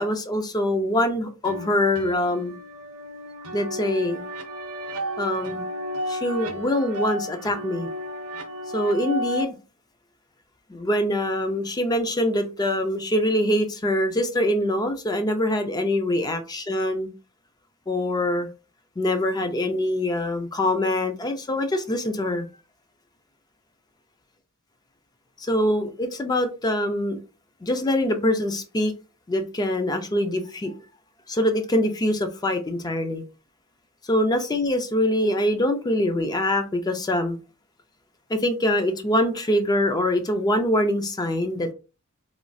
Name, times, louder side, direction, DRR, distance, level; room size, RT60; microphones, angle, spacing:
voice 1, 0.0-2.6 3.5-4.2 5.2-5.6 6.1-7.9 8.7-9.6 10.7-17.1 17.9-18.5 19.0-22.5 25.4-27.2 27.6-28.9 29.3-30.7 31.3-33.2 34.0-37.4 38.3-41.7, left 1 dB, 20° left, 7 dB, 0.4 m, -24 dB
sound 1, 1.4-9.4, equal, 90° right, 0.6 m, -33 dB
3.1 x 2.3 x 2.5 m, 0.32 s
head